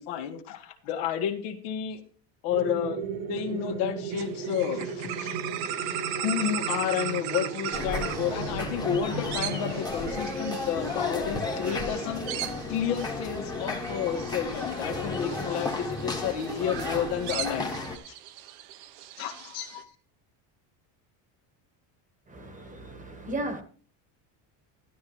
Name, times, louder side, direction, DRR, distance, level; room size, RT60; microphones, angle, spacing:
voice 1, 0.0-2.0 2.4-3.0 3.3-5.4 6.2-12.2 12.7-17.8 18.1-18.2 19.2-19.9, left 9 dB, 80° left, 2.0 m, -31 dB
sound 1, 2.5-9.8, right 5 dB, 55° right, 1.4 m, -36 dB
sound 2, 4.1-19.8, right 11 dB, 70° right, 1.0 m, -38 dB
sound 3, 7.7-18.0, left 3 dB, 10° left, 1.2 m, -33 dB
voice 2, 22.3-23.6, right 1 dB, 15° right, 1.2 m, -35 dB
12.5 x 12.0 x 3.1 m
cardioid pair, 170°, 45 cm